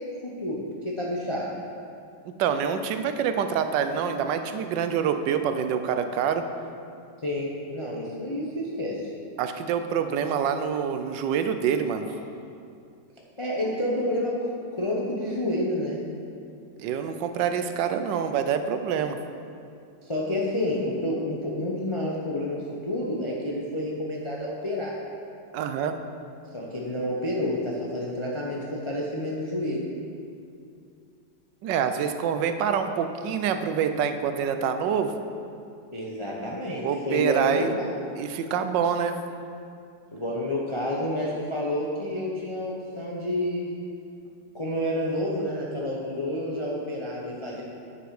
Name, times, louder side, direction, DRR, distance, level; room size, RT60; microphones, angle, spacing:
voice 1, 0.0-1.5 7.2-9.0 13.4-14.3 14.8-16.0 20.0-25.0 26.5-29.8 35.9-38.1 40.1-43.7 44.5-47.6, left 1 dB, 35° left, -3 dB, 0.4 m, -29 dB
voice 2, 2.4-6.4 9.4-12.1 16.8-19.2 25.5-25.9 31.6-35.1 36.8-37.7 38.2-39.2, right 7 dB, 80° right, 8 dB, 1.3 m, -26 dB
9.8 x 6.1 x 4.8 m, 2.4 s
omnidirectional pair, 1.9 m